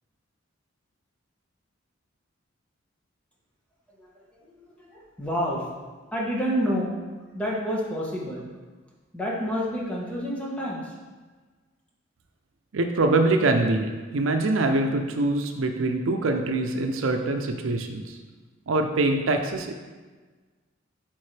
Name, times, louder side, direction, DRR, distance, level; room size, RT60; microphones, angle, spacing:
voice 1, 4.0-5.7 6.1-7.0 7.3-8.5 9.1-10.9, equal, 5° left, -4 dB, 1.2 m, -29 dB
voice 2, 12.7-18.2 18.7-19.7, right 2 dB, 85° right, 5 dB, 0.6 m, -24 dB
8.7 x 3.8 x 3.3 m, 1.3 s
head